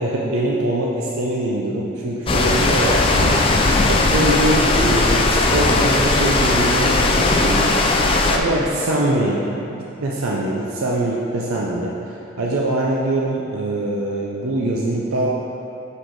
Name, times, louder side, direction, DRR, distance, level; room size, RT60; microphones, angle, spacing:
voice 1, 0.0-3.5 3.9-7.7 8.2-11.9 12.4-15.3, right 1 dB, 90° right, -3 dB, 0.6 m, -23 dB
sound 1, 2.3-8.4, left 2 dB, 25° left, 0.3 m, -17 dB
6.5 x 4.9 x 3.8 m, 2.9 s
head